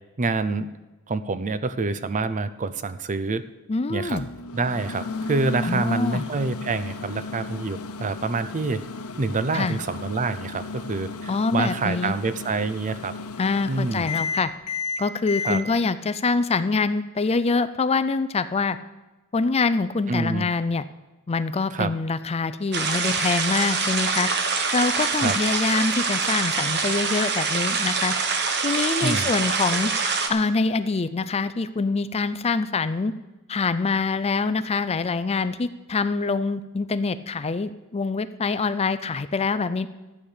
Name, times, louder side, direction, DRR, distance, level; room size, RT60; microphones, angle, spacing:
voice 1, 0.2-0.7 1.1-3.4 3.9-4.2 4.5-8.8 9.2-13.1 13.7-14.1 15.5-15.6 20.1-20.5 21.7-21.9 25.1-25.4 29.0-29.3, right 3 dB, 35° right, 13 dB, 0.6 m, -27 dB
voice 2, 3.7-4.3 5.6-6.3 9.5-9.8 11.3-12.2 13.4-14.5 15.0-18.8 19.3-20.8 21.3-24.3 24.7-28.1 28.6-29.9 30.3-33.1 33.5-39.9, left 4 dB, 30° left, 13 dB, 0.4 m, -25 dB
Microwave oven, 4.1-15.6, left 4 dB, 75° left, 1.0 m, -33 dB
sound 1, 22.7-30.3, right 4 dB, 50° right, 1.3 m, -25 dB
13.0 x 8.7 x 6.6 m, 1.1 s
head